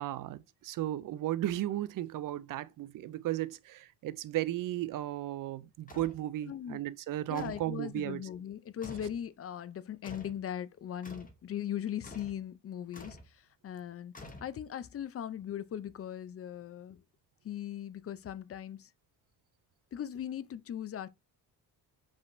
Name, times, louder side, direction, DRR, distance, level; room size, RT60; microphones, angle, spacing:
voice 1, 0.0-8.2, right 14 dB, 55° right, 0.5 m, -35 dB
sound 1, 5.9-6.2 7.3-7.7 8.8-9.2 10.0-10.4 11.0-11.4 12.0-12.4 12.9-13.3 14.1-14.8, left 2 dB, 20° left, 0.9 m, -48 dB
voice 2, 6.5-6.8 7.3-14.1 14.4-17.0 17.4-18.9 19.9-21.1, left 10 dB, 35° left, 0.4 m, -39 dB
5.2 x 3.4 x 2.6 m
cardioid pair, 85°, 41 cm